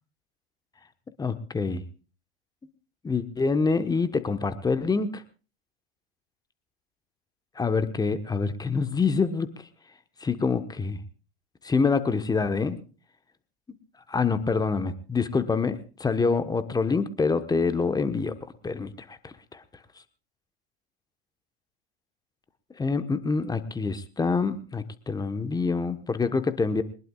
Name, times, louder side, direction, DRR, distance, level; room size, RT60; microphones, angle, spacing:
voice 1, 1.2-1.8 3.0-5.2 7.6-9.5 10.2-11.0 11.6-12.8 14.1-18.3 18.6-19.6 22.8-26.8, left 4 dB, 10° left, 11 dB, 1.3 m, -26 dB
22.5 x 20.0 x 2.4 m, 0.36 s
figure-of-eight pair, 90°, 31 cm